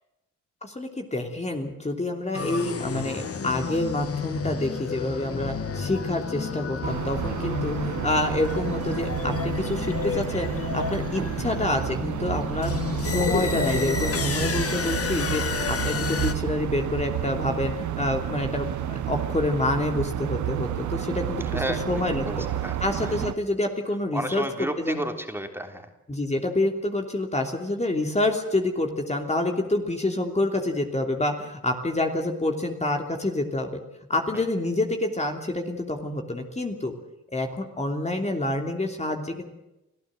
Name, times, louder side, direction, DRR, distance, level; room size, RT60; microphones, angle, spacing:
voice 1, 0.6-12.7 13.0-21.6 21.9-22.2 22.8-25.0 26.1-33.8 34.1-36.9 37.3-39.4, left 2 dB, 20° left, 3 dB, 3.0 m, -27 dB
sound 1, 2.3-16.3, left 6 dB, 50° left, 2.0 m, -30 dB
sound 2, 6.8-23.3, right 11 dB, 75° right, 1.2 m, -30 dB
voice 2, 21.5-22.8 24.1-25.9 34.3-34.4, right 1 dB, 10° right, 5 dB, 3.3 m, -32 dB
25.5 x 15.0 x 7.8 m, 0.92 s
cardioid pair, 70°, 30 cm